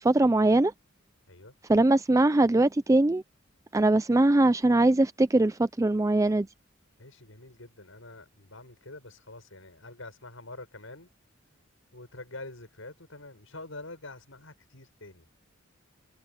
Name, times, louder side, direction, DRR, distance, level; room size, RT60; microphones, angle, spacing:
voice 1, 0.0-0.7 1.7-3.2 3.7-6.5, right 2 dB, 15° right, 0.4 m, -22 dB
voice 2, 7.0-11.1 11.9-15.3, left 2 dB, 75° left, 7.3 m, -46 dB
head